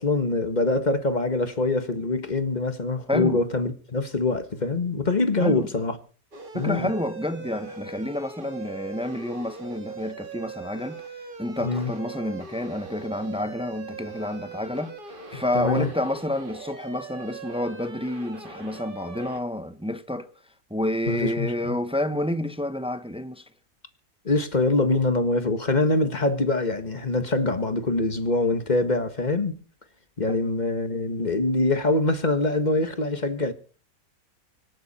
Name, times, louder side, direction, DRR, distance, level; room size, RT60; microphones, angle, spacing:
voice 1, 0.0-6.0 6.5-6.9 11.6-11.9 15.3-15.9 21.1-21.7 24.2-29.6 30.2-33.5, left 2 dB, 30° left, 1.5 m, -24 dB
voice 2, 3.1-3.4 5.4-5.7 6.5-14.9 15.3-20.3 20.7-23.4 30.3-30.4, left 1 dB, 5° right, 0.5 m, -29 dB
sound 1, 6.3-19.4, right 5 dB, 35° right, 1.7 m, -40 dB
25.5 x 9.9 x 4.3 m
omnidirectional pair, 1.7 m